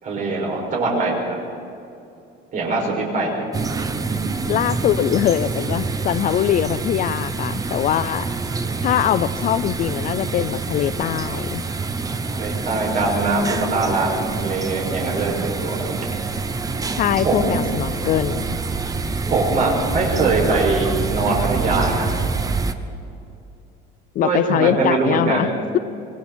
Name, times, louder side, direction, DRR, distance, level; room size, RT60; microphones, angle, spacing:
voice 1, 0.0-1.3 2.5-3.5 12.2-15.9 17.2-17.6 19.3-22.1 24.2-25.5, right 3 dB, 40° right, -1 dB, 6.2 m, -22 dB
sound 1, 3.5-22.7, right 4 dB, 15° right, 0.9 m, -26 dB
voice 2, 4.5-8.3 8.8-11.6 16.9-18.6 24.2-25.5, left 11 dB, 45° left, 14 dB, 0.5 m, -22 dB
26.5 x 23.5 x 4.4 m, 2.6 s
cardioid pair, 150°, 20 cm